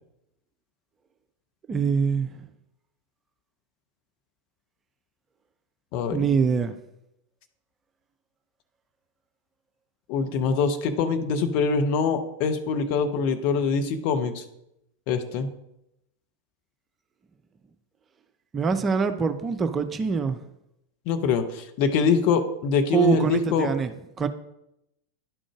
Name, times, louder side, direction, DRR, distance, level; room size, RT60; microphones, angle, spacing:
voice 1, 1.7-2.4 6.1-6.8 18.5-20.4 22.9-23.9 24.2-24.3, right 6 dB, 20° right, 9 dB, 0.4 m, -24 dB
voice 2, 5.9-6.3 10.1-14.4 15.1-15.5 21.1-23.7, left 5 dB, 45° left, 7 dB, 0.7 m, -24 dB
10.5 x 3.8 x 4.8 m, 0.84 s
figure-of-eight pair, 90°, 0 cm